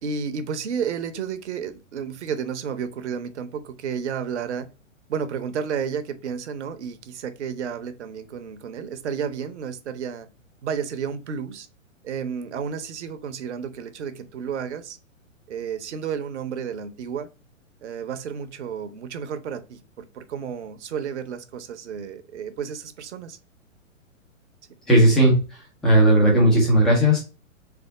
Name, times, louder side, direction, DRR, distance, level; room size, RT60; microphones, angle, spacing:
voice 1, 0.0-4.7 5.1-10.3 10.6-11.7 12.0-15.0 15.5-17.3 17.8-23.4, right 7 dB, 55° right, 0.8 m, -31 dB
voice 2, 24.9-27.2, right 1 dB, ahead, 0.3 m, -17 dB
3.8 x 3.4 x 3.8 m
figure-of-eight pair, 115°, 40 cm